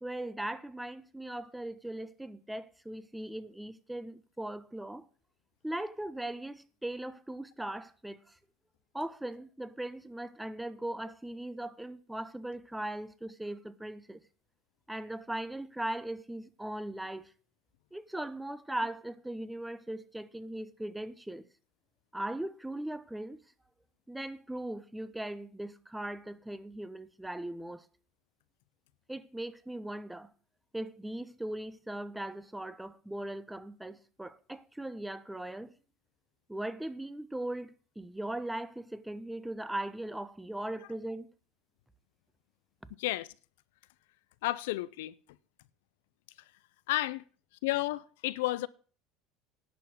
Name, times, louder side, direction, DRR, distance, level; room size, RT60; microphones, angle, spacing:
voice 1, 0.0-5.1 5.6-8.4 8.9-14.2 14.9-17.3 17.9-21.4 22.1-23.4 24.1-27.9 29.1-30.3 30.7-35.7 36.5-41.3, right 1 dB, 5° right, 1.0 m, -39 dB
voice 2, 44.4-45.2 46.9-47.2 47.6-48.7, left 17 dB, 80° left, 0.5 m, -31 dB
10.5 x 5.8 x 7.9 m
hypercardioid pair, 85°, 0 cm